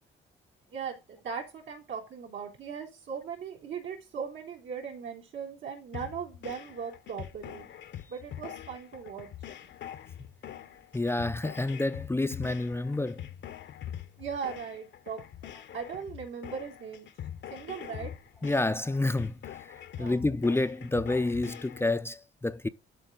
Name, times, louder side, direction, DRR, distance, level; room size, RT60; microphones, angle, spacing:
voice 1, 0.7-7.7 8.1-9.3 14.2-15.2 15.7-17.1 17.5-18.1 20.0-20.3, right 6 dB, 80° right, 3.2 m, -39 dB
sound 1, 5.9-21.9, left 10 dB, 65° left, 0.9 m, -44 dB
voice 2, 10.9-13.3 18.4-19.7 20.0-22.7, left 2 dB, 10° left, 0.5 m, -29 dB
11.5 x 4.3 x 3.9 m
cardioid pair, 90°, 20 cm